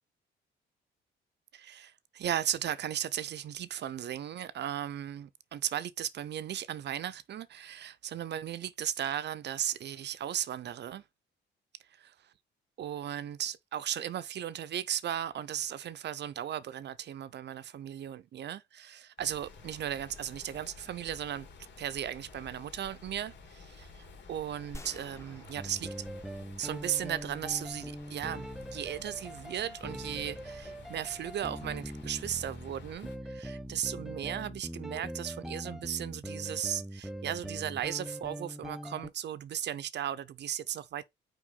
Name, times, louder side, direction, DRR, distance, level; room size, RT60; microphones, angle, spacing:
voice 1, 1.5-11.0 12.8-21.5 21.8-25.9 26.6-41.0, right 10 dB, 60° right, 0.6 m, -36 dB
sound 1, 19.2-33.2, left 4 dB, 65° left, 3.1 m, -52 dB
sound 2, 24.7-27.1, left 1 dB, 15° left, 1.1 m, -50 dB
sound 3, 25.6-39.1, equal, ahead, 0.6 m, -42 dB
6.1 x 5.1 x 3.8 m
cardioid pair, 90°, 20 cm